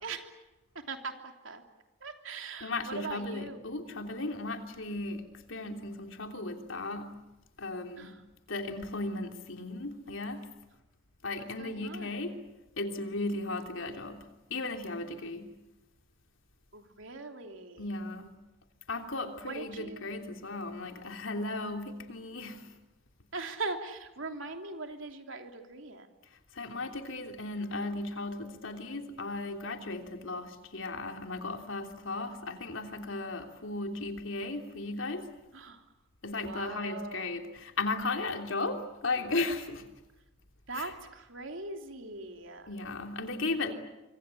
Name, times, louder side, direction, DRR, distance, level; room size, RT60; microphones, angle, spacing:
voice 1, 0.7-1.6 2.0-3.7 8.0-8.2 11.4-12.2 16.7-17.9 19.4-20.1 23.3-26.2 35.5-35.8 36.3-37.4 40.7-42.7, right 3 dB, 75° right, 5 dB, 3.2 m, -41 dB
voice 2, 2.6-5.2 5.5-7.1 7.6-8.2 8.5-10.4 11.2-12.3 12.8-14.2 14.5-15.5 17.8-18.3 18.9-22.7 26.5-35.2 36.2-39.8 40.7-40.9 42.7-43.7, left 2 dB, 75° left, 4 dB, 3.2 m, -36 dB
25.5 x 25.5 x 8.5 m, 0.99 s
head